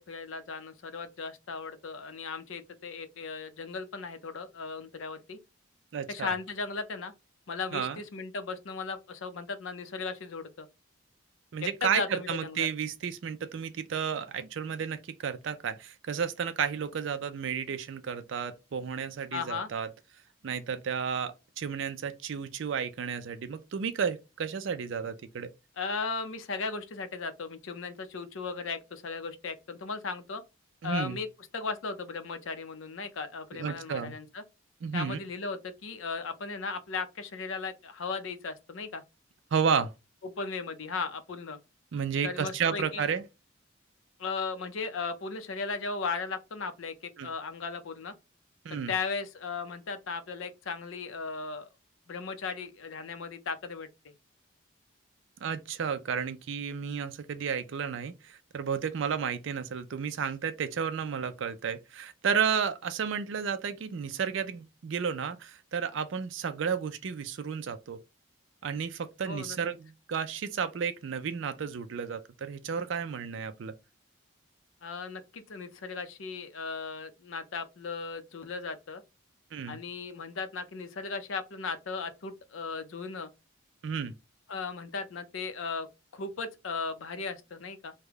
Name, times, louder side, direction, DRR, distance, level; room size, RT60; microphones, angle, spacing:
voice 1, 0.0-5.4 6.1-7.1 7.5-10.7 11.8-12.7 19.3-19.7 25.8-30.4 30.8-31.3 31.5-34.4 34.9-39.0 40.2-41.6 42.2-43.0 44.2-46.9 47.2-48.1 48.7-51.7 52.1-53.9 69.3-69.6 74.8-79.0 79.7-83.3 84.5-85.9 86.1-87.9, left 4 dB, 70° left, 0.6 m, -36 dB
voice 2, 5.9-6.3 7.7-8.0 11.5-19.9 20.4-25.5 30.8-31.2 33.5-34.1 34.8-35.2 39.5-39.9 41.9-43.2 47.2-47.3 48.6-48.9 55.4-68.0 68.6-73.7 79.5-79.8 83.8-84.1, right 6 dB, 65° right, 0.4 m, -32 dB
3.4 x 2.1 x 3.4 m
head